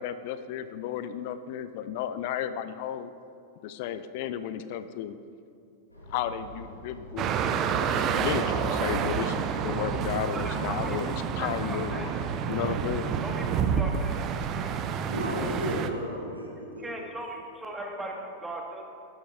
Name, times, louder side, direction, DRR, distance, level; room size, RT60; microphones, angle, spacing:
voice 1, 0.0-3.1 3.6-5.2 6.1-7.3 8.1-12.1 12.5-13.1, left 9 dB, 50° left, 12 dB, 0.4 m, -33 dB
sound 1, 5.9-13.9, left 1 dB, 85° left, 2.2 m, -45 dB
sound 2, 7.2-15.9, right 7 dB, 35° right, 0.5 m, -29 dB
voice 2, 10.3-11.0 11.4-12.2 13.2-15.1 16.8-18.9, right 1 dB, 10° right, 0 dB, 1.3 m, -39 dB
voice 3, 15.1-17.1, equal, 80° right, -1 dB, 1.7 m, -33 dB
12.5 x 10.5 x 2.3 m, 2.4 s
figure-of-eight pair, 90°, 0 cm